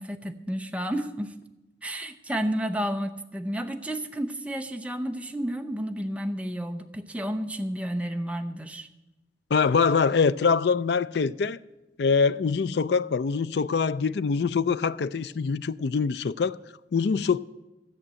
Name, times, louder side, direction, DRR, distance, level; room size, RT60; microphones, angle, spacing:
voice 1, 0.0-1.3 1.8-8.9, equal, 10° right, 0.7 m, -31 dB
voice 2, 9.5-11.6 12.0-16.6 16.9-17.4, left 5 dB, 65° left, 0.4 m, -24 dB
14.0 x 8.0 x 7.5 m
head